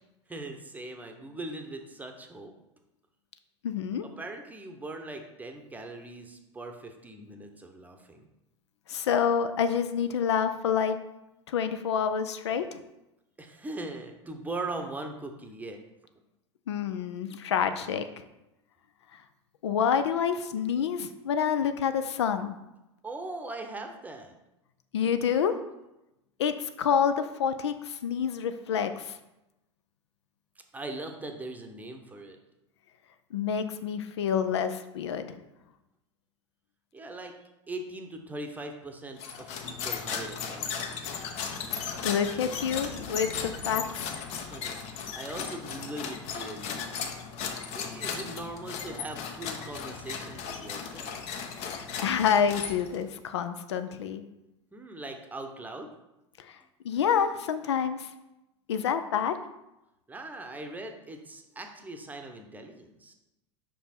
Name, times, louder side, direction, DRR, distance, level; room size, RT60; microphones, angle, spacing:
voice 1, 0.3-2.5 4.0-8.2 13.4-15.8 23.0-24.3 30.7-32.4 36.9-41.1 44.5-46.9 47.7-51.3 54.7-55.9 60.1-63.1, right 2 dB, 10° right, 4 dB, 0.8 m, -40 dB
voice 2, 3.6-4.1 8.9-11.0 11.5-12.8 16.7-18.1 19.6-22.6 24.9-25.6 26.4-29.2 33.3-35.4 42.0-44.1 51.5-54.3 56.4-56.6 56.8-58.1 58.7-59.4, left 7 dB, 65° left, 10 dB, 0.5 m, -28 dB
sound 1, 39.2-53.1, left 6 dB, 45° left, 0.9 m, -36 dB
5.4 x 5.0 x 4.3 m, 0.94 s
figure-of-eight pair, 80°, 15 cm